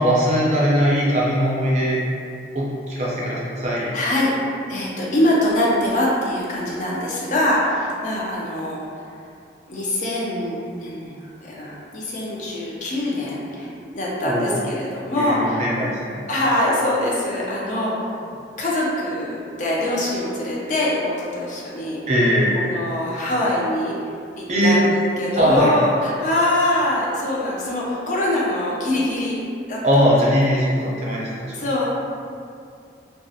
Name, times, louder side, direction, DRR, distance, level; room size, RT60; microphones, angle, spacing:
voice 1, 0.0-2.0 2.5-3.9 14.2-14.7 15.1-16.2 22.1-22.6 24.5-24.8 25.3-25.8 29.8-31.5, equal, 40° right, -6 dB, 0.5 m, -20 dB
voice 2, 3.9-9.0 9.7-15.7 16.3-18.2 18.6-22.0 22.5-23.9 24.4-29.4 29.7-30.0 30.4-30.5 31.5-31.9, left 1 dB, 40° left, -5 dB, 0.4 m, -23 dB
2.3 x 2.0 x 2.7 m, 2.4 s
head